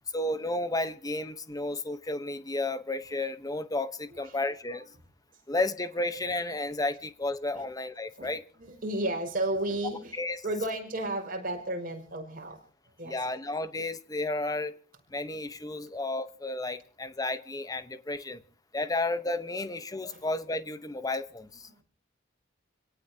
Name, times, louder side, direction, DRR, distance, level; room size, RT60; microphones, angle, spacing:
voice 1, 0.1-4.8 5.5-8.4 10.2-10.4 13.0-14.8 15.1-18.4 18.7-21.7, left 2 dB, 20° left, 1.1 m, -32 dB
voice 2, 4.1-4.4 4.7-4.8 5.3-5.4 7.5-7.7 8.2-10.2 10.4-12.6 13.0-13.2 20.1-20.2 21.7-21.8, right 1 dB, 50° right, 5.7 m, -33 dB
28.0 x 18.0 x 2.9 m
head